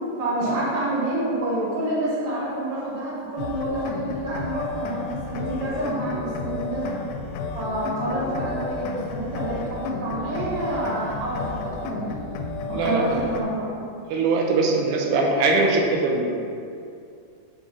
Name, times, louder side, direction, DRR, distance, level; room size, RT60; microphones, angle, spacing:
voice 1, 0.2-7.0 7.5-12.1 12.7-13.7, right 1 dB, 65° right, -7 dB, 1.1 m, -28 dB
sound 1, 3.4-13.4, left 4 dB, 85° left, 2.6 m, -32 dB
voice 2, 12.7-13.2 14.1-16.4, right 3 dB, 85° right, 0 dB, 2.9 m, -22 dB
8.3 x 3.9 x 4.0 m, 2.5 s
omnidirectional pair, 4.6 m